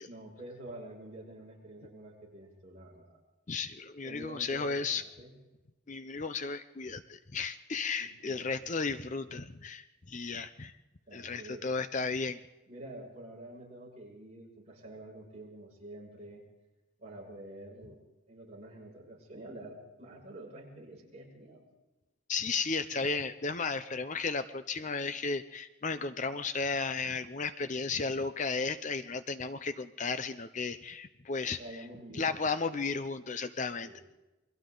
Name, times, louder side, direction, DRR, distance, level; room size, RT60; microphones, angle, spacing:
voice 1, 0.0-3.2 4.0-5.3 8.0-8.5 11.1-11.7 12.7-16.4 17.0-18.0 18.3-21.6 31.6-32.2 33.8-34.0, right 1 dB, 30° right, -3 dB, 6.7 m, -48 dB
voice 2, 3.5-5.0 5.9-10.8 11.1-12.4 22.3-31.8 32.1-34.0, left 4 dB, 35° left, 11 dB, 0.6 m, -34 dB
29.0 x 23.0 x 3.9 m, 1.1 s
head